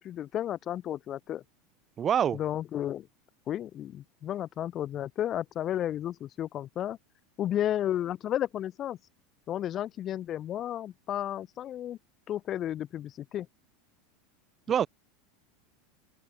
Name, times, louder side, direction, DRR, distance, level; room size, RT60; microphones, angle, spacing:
voice 1, 0.0-1.4 2.3-3.1 3.5-7.0 7.4-9.0 9.5-12.0 12.3-13.5, left 11 dB, 35° left, 0.3 m, -33 dB
voice 2, 2.0-2.4 14.7-14.9, right 8 dB, 30° right, 0.6 m, -25 dB
open air
supercardioid pair, 130°, 0 cm